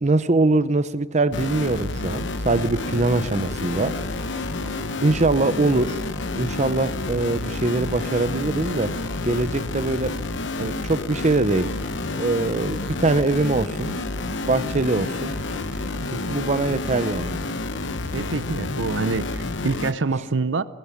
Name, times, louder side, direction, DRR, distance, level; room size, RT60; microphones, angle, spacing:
voice 1, 0.0-4.0 5.0-6.0 6.4-8.9 9.2-10.1 10.6-11.7 12.1-13.9 14.5-15.3 16.3-17.4, right 2 dB, 40° right, 12 dB, 0.7 m, -22 dB
sound 1, 1.3-19.9, left 2 dB, 70° left, 1.0 m, -29 dB
sound 2, 2.1-17.1, equal, 5° right, 3.5 m, -46 dB
voice 2, 18.1-20.6, right 4 dB, 75° right, 14 dB, 0.7 m, -26 dB
21.5 x 17.0 x 9.9 m, 1.4 s
head